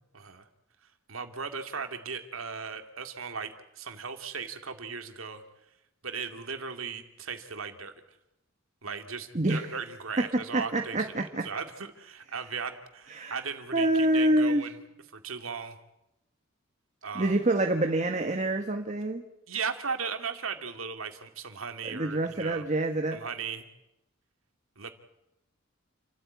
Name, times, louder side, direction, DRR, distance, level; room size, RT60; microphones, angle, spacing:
voice 1, 0.1-0.5 1.1-5.4 6.0-7.9 8.8-11.0 11.4-13.9 14.1-14.7 15.1-15.8 17.0-17.3 19.5-22.6 23.1-23.7 24.8-24.9, right 5 dB, 80° right, 6 dB, 2.5 m, -37 dB
voice 2, 9.3-9.7 10.2-11.5 13.1-13.4 13.7-14.6 17.1-19.2 21.8-23.2, right 1 dB, 35° right, 4 dB, 1.6 m, -26 dB
29.0 x 13.5 x 9.6 m, 0.90 s
head